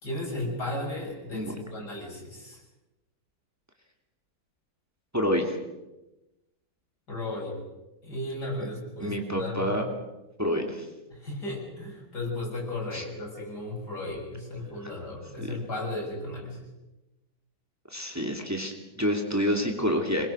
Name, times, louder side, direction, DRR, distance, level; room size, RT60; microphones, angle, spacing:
voice 1, 0.0-2.6 7.1-7.6 8.0-9.7 11.1-16.6, left 2 dB, 85° left, 0 dB, 6.7 m, -35 dB
voice 2, 5.1-5.6 9.0-9.8 10.4-10.9 12.9-13.0 15.4-15.5 17.9-20.3, equal, 10° right, 3 dB, 2.8 m, -28 dB
26.0 x 22.0 x 6.2 m, 1.0 s
omnidirectional pair, 1.7 m